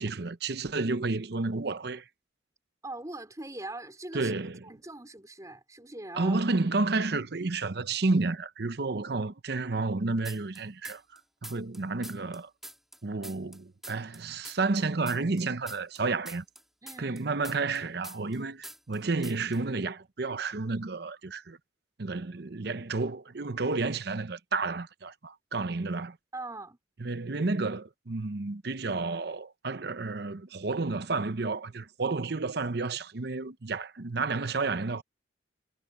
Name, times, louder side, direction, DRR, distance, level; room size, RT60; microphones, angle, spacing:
voice 1, 0.0-2.1 4.1-4.6 6.1-12.5 13.0-16.4 17.0-21.6 22.0-26.2 27.0-35.0, right 3 dB, 55° right, 0.8 m, -31 dB
voice 2, 2.8-4.3 4.6-6.4 16.8-17.2 26.3-26.8, right 2 dB, 15° right, 4.1 m, -41 dB
sound 1, 10.2-11.2 11.4-14.2 14.4-18.4 18.6-19.0 19.2-19.6, right 1 dB, ahead, 3.8 m, -45 dB
head